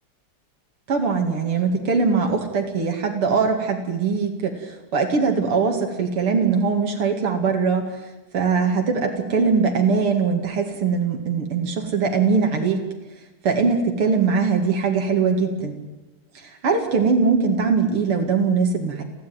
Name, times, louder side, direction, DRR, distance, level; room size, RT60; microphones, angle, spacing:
voice 1, 0.9-7.9 8.3-12.8 13.4-15.8 16.4-19.0, right 5 dB, 85° right, 3 dB, 3.1 m, -21 dB
30.0 x 11.0 x 9.4 m, 1.0 s
omnidirectional pair, 2.4 m